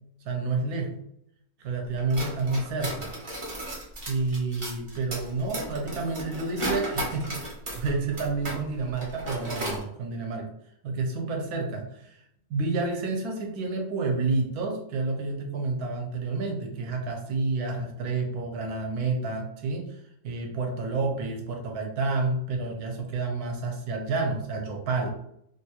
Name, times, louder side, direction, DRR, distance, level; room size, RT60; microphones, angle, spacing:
voice 1, 0.2-1.0 1.6-3.1 4.1-10.5 10.8-12.2 12.5-20.0 20.2-25.1, right 3 dB, 75° right, 2 dB, 1.2 m, -29 dB
Scrambling cutlery, 2.0-8.6 8.9-9.8, right 1 dB, 30° right, 0.5 m, -34 dB
3.2 x 2.3 x 2.9 m, 0.75 s
omnidirectional pair, 1.6 m